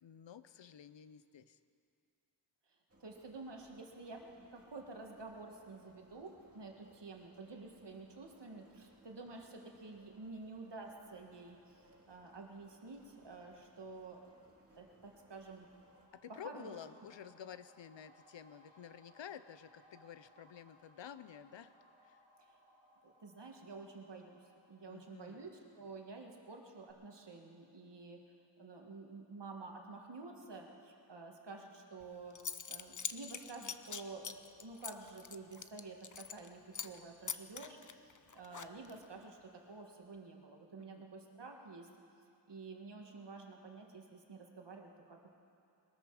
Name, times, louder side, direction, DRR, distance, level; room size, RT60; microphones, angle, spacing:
voice 1, 0.0-1.6 16.1-21.8 22.0-22.2 24.9-25.4 40.8-41.0, left 9 dB, 80° left, 13 dB, 0.6 m, -51 dB
sound 1, 2.9-16.1, right 1 dB, 35° right, 2.3 m, -67 dB
voice 2, 3.0-4.2 4.5-14.2 14.7-15.7 16.3-16.7 22.5-22.6 23.0-24.4 24.7-28.2 28.6-37.8 38.0-41.9 42.5-45.3, right 3 dB, 70° right, 1 dB, 1.9 m, -50 dB
sound 2, 15.2-26.6 26.9-27.0, equal, 20° right, 3.6 m, -67 dB
Zipper (clothing) / Coin (dropping), 32.0-32.1 32.3-36.5 36.7-37.0 37.3-39.0, left 6 dB, 45° left, 0.7 m, -44 dB
21.0 x 13.5 x 4.9 m, 2.5 s
wide cardioid pair, 55°, 43 cm